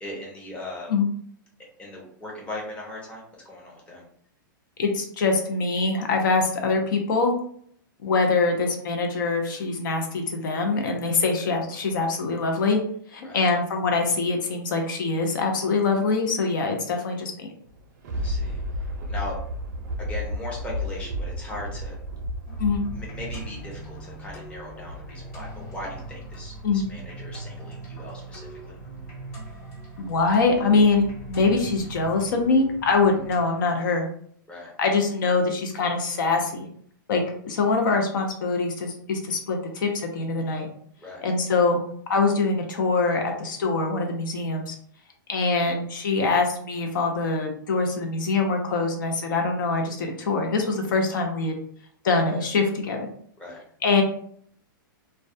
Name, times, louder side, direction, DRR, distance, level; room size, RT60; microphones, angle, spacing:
voice 1, 0.0-0.9 1.8-4.0 13.2-13.4 18.1-19.4 20.0-22.0 22.9-28.8 34.5-34.7 41.0-41.2 53.4-53.6, left 1 dB, 10° left, -3 dB, 0.6 m, -39 dB
voice 2, 4.8-7.3 8.0-12.8 13.1-17.5 22.6-22.8 26.6-26.8 30.0-34.1 34.8-36.7 37.1-40.7 41.2-41.8 42.1-44.7 45.3-51.5 52.0-53.0 53.8-54.0, left 4 dB, 65° left, 3 dB, 0.5 m, -24 dB
Thunder, 17.6-25.2 25.7-25.8, left 1 dB, 55° right, 0.5 m, -32 dB
sound 1, 22.5-33.4, right 2 dB, 45° left, 1.0 m, -40 dB
2.2 x 2.1 x 2.6 m, 0.62 s
hypercardioid pair, 150°, 12 cm